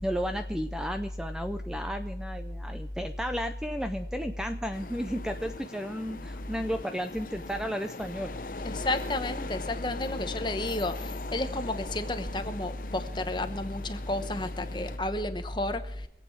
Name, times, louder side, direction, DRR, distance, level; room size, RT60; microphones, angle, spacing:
voice 1, 0.0-8.3, equal, 5° right, 7 dB, 0.5 m, -33 dB
sound 1, 4.7-15.0, left 3 dB, 50° left, 0.7 m, -41 dB
voice 2, 8.6-16.1, left 2 dB, 25° left, 8 dB, 1.0 m, -31 dB
24.5 x 8.4 x 4.6 m, 0.76 s
head